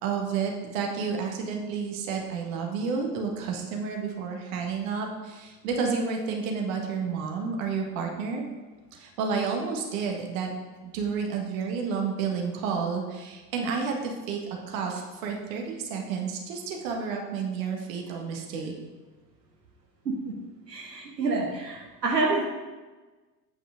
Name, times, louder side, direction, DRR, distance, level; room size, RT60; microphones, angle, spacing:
voice 1, 0.0-8.4 8.9-10.5 10.8-14.4 14.7-18.7, right 5 dB, 55° right, 2 dB, 1.6 m, -30 dB
voice 2, 20.7-22.4, right 3 dB, 80° right, -2 dB, 1.2 m, -27 dB
8.7 x 5.3 x 5.1 m, 1.3 s
figure-of-eight pair, 75°, 49 cm